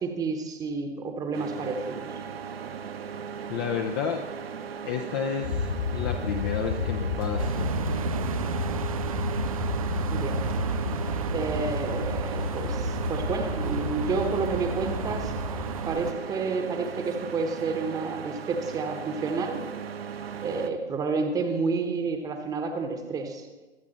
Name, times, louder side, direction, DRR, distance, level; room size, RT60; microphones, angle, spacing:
voice 1, 0.0-2.2 10.1-10.4 11.3-15.3 15.8-19.6 20.4-23.5, right 4 dB, 10° right, 5 dB, 1.1 m, -30 dB
sound 1, 1.3-20.7, right 7 dB, 60° right, 1.1 m, -38 dB
voice 2, 3.5-4.2 4.9-7.7, left 7 dB, 20° left, 3 dB, 0.6 m, -31 dB
sound 2, 5.4-15.8, left 5 dB, 35° left, 1.3 m, -32 dB
sound 3, 7.4-16.1, right 7 dB, 35° right, 0.4 m, -33 dB
23.0 x 8.3 x 4.2 m, 1.2 s
figure-of-eight pair, 125°, 34 cm